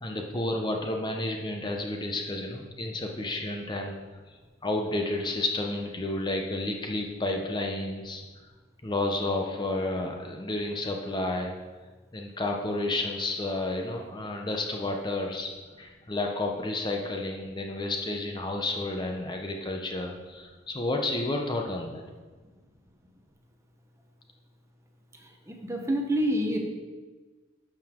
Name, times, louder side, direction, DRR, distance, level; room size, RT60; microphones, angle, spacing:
voice 1, 0.0-4.0 4.3-4.4 4.6-8.2 8.8-11.6 12.1-15.5 15.8-22.0, left 2 dB, 25° left, 2 dB, 0.8 m, -31 dB
voice 2, 25.5-26.6, equal, 15° right, 2 dB, 1.0 m, -27 dB
12.0 x 6.9 x 3.7 m, 1.3 s
head